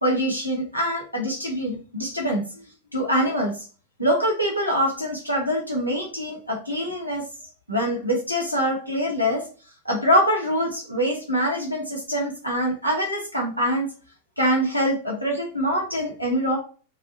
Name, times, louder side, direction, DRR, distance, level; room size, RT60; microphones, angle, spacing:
voice 1, 0.0-2.6 2.9-3.6 4.0-7.2 7.7-9.4 9.8-13.9 14.4-16.6, equal, 90° right, -1 dB, 1.2 m, -24 dB
5.5 x 2.6 x 2.6 m, 0.38 s
figure-of-eight pair, 90°, 0 cm